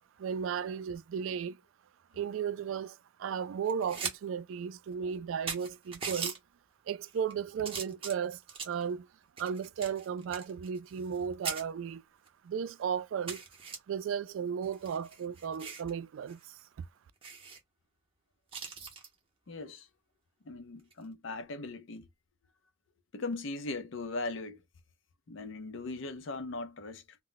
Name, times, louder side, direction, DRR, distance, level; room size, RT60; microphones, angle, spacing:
voice 1, 0.2-1.6 2.1-6.3 6.9-8.4 8.6-9.1 9.4-12.0 12.4-13.4 13.9-16.4, right 7 dB, 85° right, 0.3 m, -35 dB
sound 1, 3.7-4.2 4.5-4.6 5.1-5.2 5.5-6.4 7.1-7.3 7.6-8.8 9.4-11.2 11.4-11.6 12.3-12.4 12.7-12.8 13.3-13.8 14.6-15.9 16.3-16.4 16.7-16.8 17.2-17.6 18.5-19.1 20.8-21.0, right 5 dB, 30° right, 0.7 m, -40 dB
voice 2, 19.5-19.9 20.4-22.1 23.1-24.6 25.3-27.2, left 3 dB, 75° left, 0.5 m, -39 dB
2.1 x 2.1 x 3.8 m
head